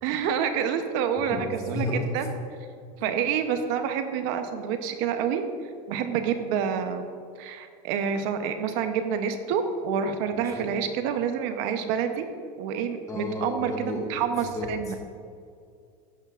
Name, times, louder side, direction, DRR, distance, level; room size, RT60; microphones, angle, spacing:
voice 1, 0.0-2.3 3.0-5.4 5.9-7.1 7.4-12.2 12.6-15.0, right 7 dB, 65° right, 7 dB, 0.7 m, -28 dB
voice 2, 1.3-2.1 3.0-3.1 10.3-10.7 13.1-15.0, left 2 dB, 15° left, -1 dB, 1.8 m, -33 dB
11.5 x 9.2 x 2.4 m, 2.3 s
supercardioid pair, 140°, 19 cm